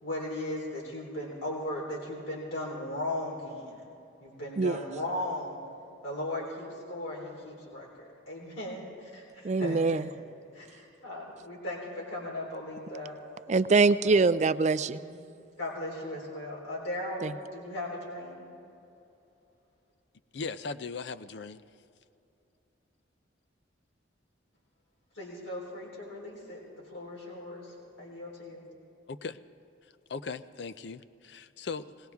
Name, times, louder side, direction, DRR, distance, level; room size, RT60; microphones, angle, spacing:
voice 1, 0.0-3.8 4.2-5.6 6.0-10.1 10.5-13.2 14.0-14.2 14.9-15.2 15.6-18.5 25.1-26.6 26.9-28.6, left 1 dB, 90° left, -4 dB, 3.9 m, -37 dB
voice 2, 9.4-10.1 13.5-15.0 17.2-17.3, right 4 dB, 35° right, 14 dB, 0.4 m, -24 dB
voice 3, 20.3-21.6 29.1-29.4 30.1-32.1, left 4 dB, 60° left, 12 dB, 0.5 m, -38 dB
20.5 x 18.5 x 3.6 m, 2.8 s
head